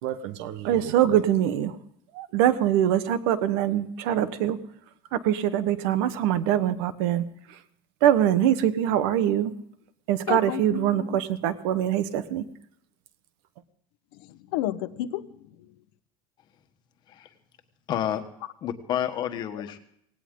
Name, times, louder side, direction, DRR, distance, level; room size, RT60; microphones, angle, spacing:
voice 1, 0.0-1.8 2.1-4.6 5.1-7.6 8.0-9.5 10.1-12.4, right 11 dB, 75° right, 13 dB, 1.3 m, -24 dB
voice 2, 10.3-11.2 14.1-15.8 19.6-19.8, left 14 dB, 85° left, 12 dB, 1.0 m, -33 dB
voice 3, 17.9-18.2 18.6-19.8, left 10 dB, 35° left, 7 dB, 1.4 m, -29 dB
18.5 x 17.0 x 3.8 m, 0.72 s
cardioid pair, 175°, 13 cm